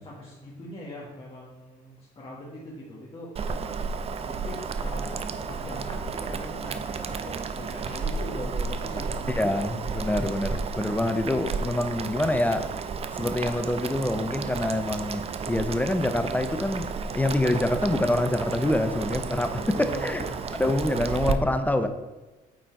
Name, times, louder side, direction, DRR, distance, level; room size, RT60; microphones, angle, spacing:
voice 1, 0.0-3.3 4.2-9.4 9.9-10.1 19.7-21.0 21.3-21.5, left 1 dB, 30° left, -5 dB, 1.5 m, -41 dB
Boiling, 3.4-21.3, right 5 dB, 35° right, 0.5 m, -32 dB
voice 2, 9.3-12.7 13.1-20.2 20.6-21.9, left 1 dB, 10° left, 9 dB, 0.5 m, -26 dB
8.7 x 3.9 x 4.6 m, 1.2 s
cardioid pair, 110°, 17 cm